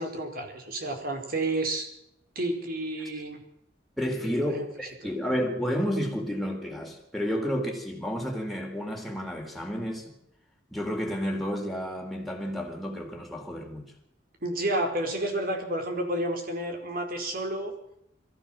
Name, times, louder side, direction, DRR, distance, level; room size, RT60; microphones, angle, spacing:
voice 1, 0.0-1.9 2.3-3.4 4.2-4.6 5.0-5.1 14.4-17.7, right 1 dB, 55° right, 4.8 m, -30 dB
voice 2, 4.0-10.1 10.7-13.9, equal, ahead, 4.2 m, -31 dB
22.5 x 15.5 x 7.6 m
head